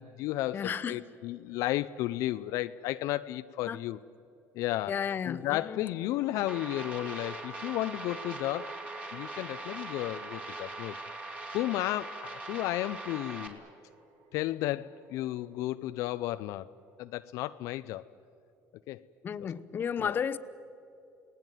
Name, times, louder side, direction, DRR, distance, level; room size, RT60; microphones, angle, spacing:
voice 1, 0.0-4.0 4.5-4.9 5.3-8.8 9.1-13.6 14.3-16.7 17.0-18.0 18.9-19.0 19.4-19.5 20.0-20.2, left 15 dB, 75° left, 0.5 m, -33 dB
voice 2, 0.5-1.0 3.7-3.8 4.9-5.8 19.2-20.4, left 7 dB, 40° left, 0.9 m, -33 dB
sound 1, 2.6-2.7 5.6-17.0, right 5 dB, 70° right, 2.5 m, -52 dB
sound 2, 6.5-13.5, right 2 dB, 25° right, 3.3 m, -41 dB
30.0 x 19.0 x 9.2 m
cardioid pair, 110°, 5 cm